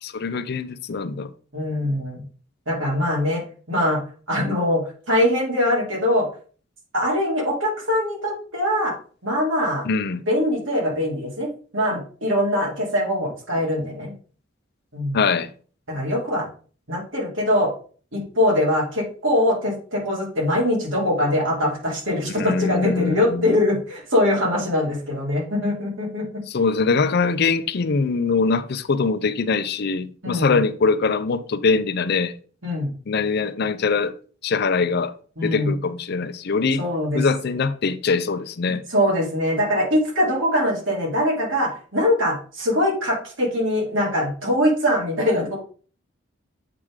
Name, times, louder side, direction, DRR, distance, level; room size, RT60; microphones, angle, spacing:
voice 1, 0.0-1.3 9.9-10.2 15.1-15.5 22.4-23.5 26.5-32.3 33.1-34.1 34.4-35.1 35.4-36.8 37.1-38.8, left 4 dB, 55° left, 0.5 m, -22 dB
voice 2, 1.5-2.2 2.7-4.0 4.3-6.3 6.9-8.9 9.2-9.9 10.3-14.1 14.9-15.2 15.9-16.5 16.9-17.7 18.1-26.2 30.2-30.6 32.6-32.9 35.4-35.7 36.8-37.2 38.6-45.6, left 1 dB, 80° right, 2.6 m, -22 dB
7.6 x 3.6 x 4.8 m
head